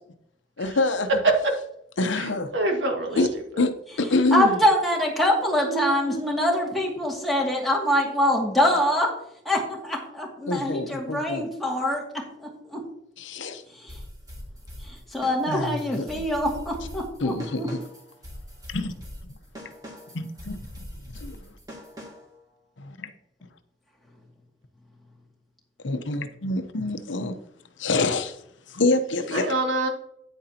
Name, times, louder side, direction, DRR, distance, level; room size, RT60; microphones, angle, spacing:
voice 1, 0.6-1.1 2.0-2.5 3.2-3.3 3.6-4.6 10.5-11.5 13.2-13.6 15.5-16.2 17.2-17.8 18.7-18.9 19.2-19.3 20.1-20.6 21.1-21.4 22.8-23.1 25.8-27.4 27.8-28.4 28.7-29.5, left 2 dB, 75° left, 0.8 m, -26 dB
voice 2, 2.2-3.2 5.6-6.7 29.3-29.9, right 2 dB, 75° right, 1.9 m, -28 dB
voice 3, 4.3-9.1 9.5-12.8 13.8-13.9 14.9-17.7, left 1 dB, ahead, 2.3 m, -24 dB
sound 1, 13.9-22.4, equal, 20° right, 2.4 m, -42 dB
9.8 x 9.0 x 2.9 m
head